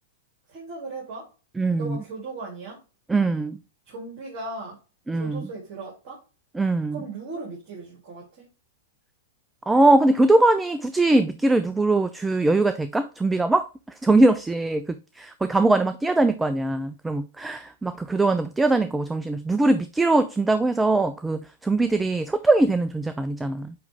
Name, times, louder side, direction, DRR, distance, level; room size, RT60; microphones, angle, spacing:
voice 1, 0.5-1.3 1.8-2.8 3.8-4.8 5.1-6.2 6.9-8.5, right 3 dB, 45° right, 3.0 m, -37 dB
voice 2, 1.6-2.0 3.1-3.6 5.1-5.5 6.5-7.0 9.7-13.7 14.0-14.9 15.2-23.7, right 2 dB, 10° right, 0.4 m, -21 dB
8.6 x 3.2 x 3.4 m
hypercardioid pair, 115°, 0 cm